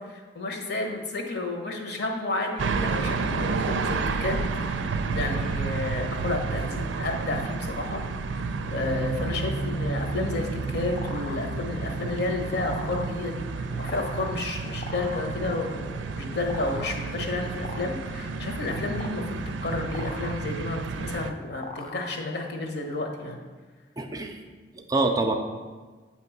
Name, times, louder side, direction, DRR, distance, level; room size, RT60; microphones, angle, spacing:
voice 1, 0.0-4.8 5.1-8.0 8.7-23.4, left 2 dB, 60° left, 2 dB, 1.0 m, -31 dB
sound 1, 2.6-21.3, right 4 dB, 90° right, 0.4 m, -31 dB
sound 2, 10.4-22.7, left 3 dB, 40° left, 0.6 m, -42 dB
voice 2, 24.0-24.4 24.7-25.3, right 2 dB, 20° right, 4 dB, 0.4 m, -26 dB
8.3 x 3.0 x 5.9 m, 1.4 s
head